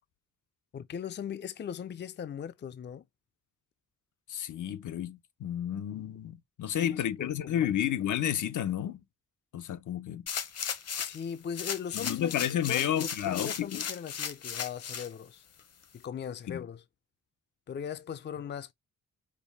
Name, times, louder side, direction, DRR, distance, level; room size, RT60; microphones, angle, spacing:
voice 1, 0.7-3.0 6.7-7.7 11.0-15.4 15.9-16.8 17.7-18.7, left 8 dB, 35° left, 0.5 m, -39 dB
voice 2, 4.3-9.0 9.5-10.2 11.9-13.8 16.5-16.6, left 10 dB, 75° left, 0.8 m, -31 dB
sound 1, 10.3-11.2 11.5-15.1 15.6-15.7, left 7 dB, 55° left, 0.9 m, -36 dB
5.3 x 2.2 x 4.0 m
cardioid pair, 105°, 31 cm